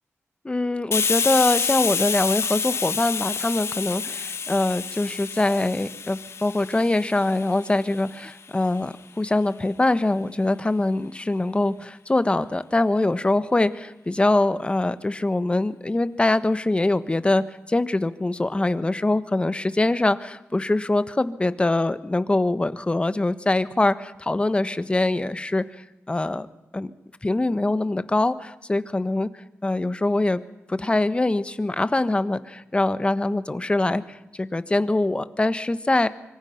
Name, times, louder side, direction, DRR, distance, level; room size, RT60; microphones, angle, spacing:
voice 1, 0.4-26.5 26.7-26.9 27.2-29.3 29.6-30.4 30.7-36.1, left 2 dB, 20° left, 13 dB, 1.3 m, -23 dB
Hiss, 0.9-8.3, left 5 dB, 60° left, 1.4 m, -28 dB
25.5 x 24.0 x 5.9 m, 0.92 s
wide cardioid pair, 85°, 5 cm